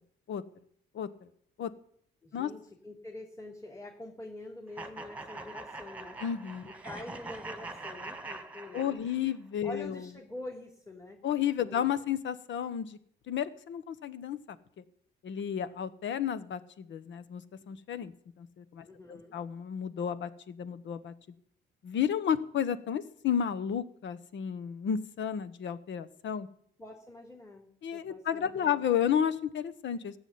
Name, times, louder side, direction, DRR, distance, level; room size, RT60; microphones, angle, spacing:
voice 1, 2.2-6.2 6.8-9.0 9.6-11.2 11.6-11.9 18.8-19.4 26.8-28.8, left 2 dB, 15° left, 0 dB, 3.1 m, -46 dB
sound 1, 4.8-9.4, right 2 dB, 5° right, 1.9 m, -43 dB
voice 2, 6.2-6.7 8.7-10.0 11.2-13.0 13.3-14.4 14.8-14.9 15.2-18.1 18.4-21.1 21.8-26.5 27.8-30.1, left 8 dB, 70° left, 14 dB, 1.2 m, -32 dB
15.5 x 7.1 x 9.5 m, 0.66 s
cardioid pair, 90°, 20 cm